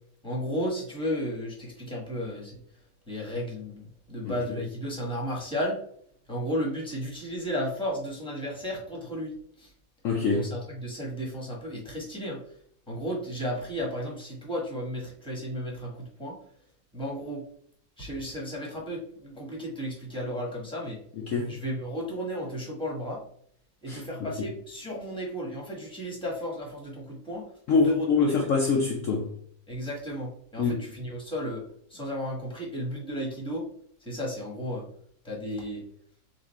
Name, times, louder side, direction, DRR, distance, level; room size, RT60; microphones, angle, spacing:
voice 1, 0.2-2.6 3.1-5.8 6.3-9.7 10.2-12.4 12.9-16.4 16.9-17.4 18.0-21.0 21.5-23.2 23.8-28.1 29.7-31.6 31.9-33.7 34.0-34.8 35.2-35.8, equal, 5° left, 1.0 m, -34 dB
voice 2, 10.0-10.5 21.2-21.5 23.9-24.0 27.7-29.3 30.6-30.8, left 4 dB, 80° left, 0.7 m, -24 dB
4.2 x 2.5 x 4.1 m
omnidirectional pair, 2.1 m